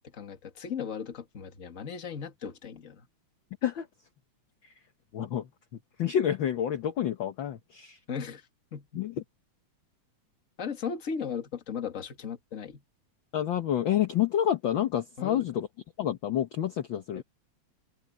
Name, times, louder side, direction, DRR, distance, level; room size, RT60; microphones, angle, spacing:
voice 1, 0.0-3.1 8.1-8.4 8.7-9.0 10.6-12.8 15.2-15.4 17.1-17.2, left 6 dB, 30° left, 1.7 m, -37 dB
voice 2, 5.1-5.5 6.0-8.0 8.9-9.2 13.3-15.7 16.0-17.2, left 10 dB, 55° left, 1.4 m, -28 dB
omnidirectional pair, 3.3 m